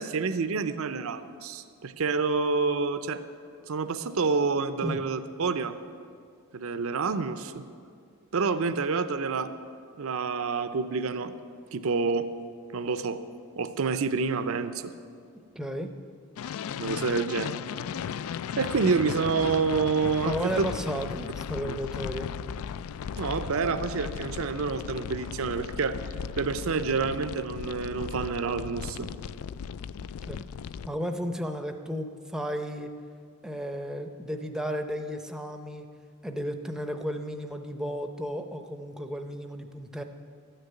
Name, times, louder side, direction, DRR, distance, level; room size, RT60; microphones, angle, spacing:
voice 1, 0.0-3.2 3.7-5.8 6.5-7.6 8.3-9.5 10.0-11.3 11.7-12.3 12.7-13.2 13.6-14.9 16.8-17.5 18.6-20.7 21.7-21.8 23.2-26.0 26.4-29.1, right 4 dB, 70° right, 11 dB, 0.5 m, -28 dB
voice 2, 15.6-15.9 20.2-22.3 30.2-30.4 30.9-32.9 33.4-35.9 36.2-40.0, equal, 5° right, 6 dB, 0.6 m, -33 dB
sound 1, 16.4-30.9, left 7 dB, 75° left, 0.3 m, -36 dB
13.0 x 6.7 x 9.1 m, 2.2 s
head